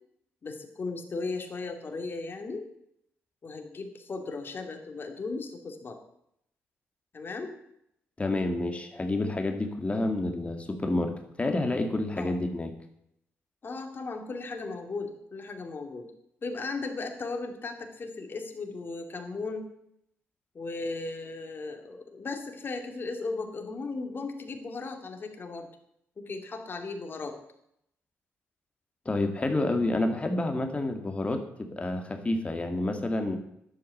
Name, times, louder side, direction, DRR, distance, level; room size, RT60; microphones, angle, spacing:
voice 1, 0.4-2.6 3.4-6.0 7.1-7.6 12.2-12.4 13.6-16.1 16.4-19.7 20.5-25.7 26.2-27.4, left 3 dB, 45° left, 4 dB, 2.5 m, -36 dB
voice 2, 8.2-12.7 29.1-33.4, left 2 dB, 25° left, 5 dB, 2.0 m, -29 dB
11.0 x 8.3 x 7.8 m, 0.76 s
cardioid pair, 75°, 5 cm